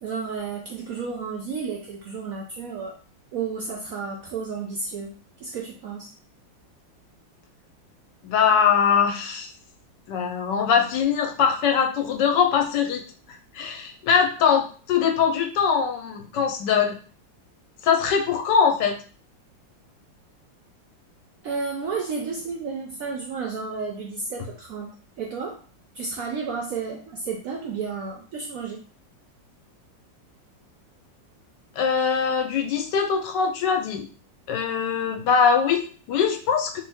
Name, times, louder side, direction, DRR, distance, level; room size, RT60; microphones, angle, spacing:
voice 1, 0.0-3.0 3.3-5.1 5.4-6.1 21.4-24.9 25.2-25.6 25.9-28.8, right 5 dB, 75° right, 1 dB, 0.8 m, -32 dB
voice 2, 8.2-9.5 10.1-13.0 13.5-17.0 17.8-19.0 31.8-34.1 34.5-36.8, left 7 dB, 75° left, 4 dB, 1.2 m, -22 dB
3.1 x 3.0 x 3.4 m, 0.40 s
omnidirectional pair, 2.0 m